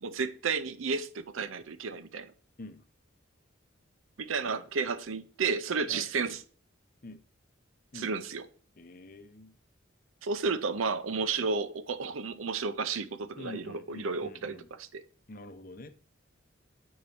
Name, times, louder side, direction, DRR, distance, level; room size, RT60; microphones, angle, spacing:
voice 1, 0.0-2.3 4.2-6.4 7.9-8.4 10.2-15.0, right 5 dB, 90° right, 0.6 m, -32 dB
voice 2, 8.8-9.5 13.3-14.7 15.3-15.9, left 2 dB, 45° left, 0.7 m, -47 dB
8.6 x 4.7 x 4.1 m
head